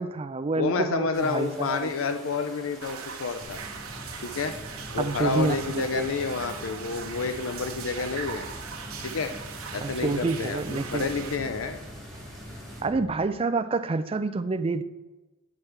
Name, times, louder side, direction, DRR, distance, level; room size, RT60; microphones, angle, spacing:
voice 1, 0.0-1.9 5.0-6.0 9.8-11.1 12.8-14.8, right 3 dB, 25° right, 12 dB, 0.3 m, -28 dB
voice 2, 0.6-3.6 4.2-4.5 4.9-8.5 9.0-9.3 9.7-11.8, left 4 dB, 70° left, 8 dB, 0.5 m, -29 dB
sound 1, 1.1-12.8, equal, ahead, 2.6 m, -48 dB
sound 2, 2.8-11.4, right 6 dB, 90° right, 0.9 m, -40 dB
sound 3, 3.4-13.1, equal, 30° left, 1.5 m, -43 dB
9.6 x 6.0 x 3.3 m, 1.2 s
head